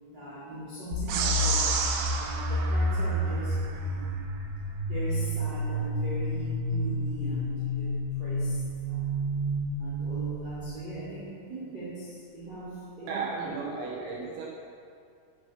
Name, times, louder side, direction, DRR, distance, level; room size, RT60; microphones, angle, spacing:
voice 1, 0.1-1.7 2.2-4.2 4.8-7.9 8.2-8.6 8.9-9.0 9.8-13.5, right 1 dB, 30° right, -11 dB, 2.8 m, -40 dB
sound 1, 0.9-10.7, equal, 55° left, 2.8 m, -30 dB
sound 2, 1.1-3.7, right 6 dB, 85° right, 2.2 m, -31 dB
voice 2, 13.1-14.5, right 4 dB, 70° right, -4 dB, 3.5 m, -34 dB
11.0 x 8.9 x 6.0 m, 2.3 s
omnidirectional pair, 5.7 m